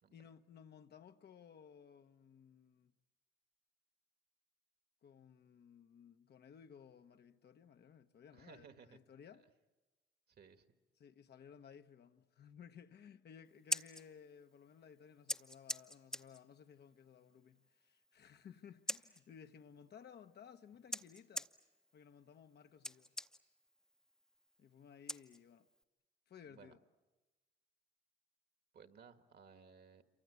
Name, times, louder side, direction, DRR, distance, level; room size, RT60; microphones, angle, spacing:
voice 1, 0.1-2.9 5.0-9.5 11.0-21.5 21.9-23.1 24.6-25.7 26.3-26.8, left 7 dB, 55° left, 1.0 m, -58 dB
voice 2, 8.3-9.0 10.3-10.6 26.5-26.7 28.7-30.0, right 6 dB, 50° right, 1.7 m, -59 dB
Scissors, 13.5-25.8, equal, 5° left, 0.8 m, -47 dB
27.5 x 24.5 x 8.2 m
cardioid pair, 90°, 20 cm